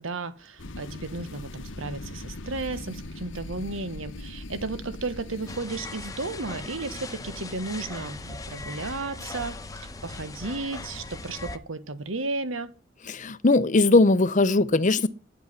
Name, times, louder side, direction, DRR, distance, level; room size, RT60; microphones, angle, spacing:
voice 1, 0.0-9.6 10.0-12.7, right 3 dB, 85° right, 1.4 m, -34 dB
sound 1, 0.6-5.6, left 2 dB, 70° left, 1.1 m, -40 dB
sound 2, 5.5-11.6, left 3 dB, 15° left, 1.0 m, -39 dB
voice 2, 13.1-15.1, left 2 dB, 40° left, 0.7 m, -20 dB
10.0 x 8.2 x 9.8 m
head